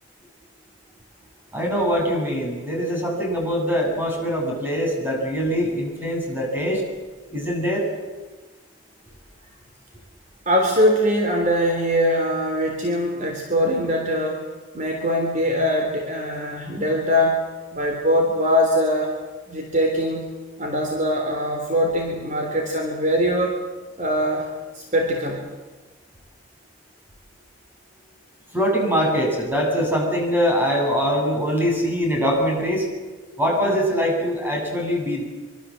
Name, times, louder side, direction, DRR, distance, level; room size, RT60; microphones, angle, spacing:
voice 1, 1.5-6.8 7.3-7.9 28.5-32.9 33.4-35.2, equal, 10° right, 0 dB, 7.5 m, -23 dB
voice 2, 10.5-14.5 14.7-17.4 17.7-19.2 19.5-20.3 20.6-23.6 24.0-24.5 24.7-25.4, equal, 40° right, 2 dB, 3.5 m, -22 dB
25.0 x 25.0 x 7.8 m, 1.3 s
head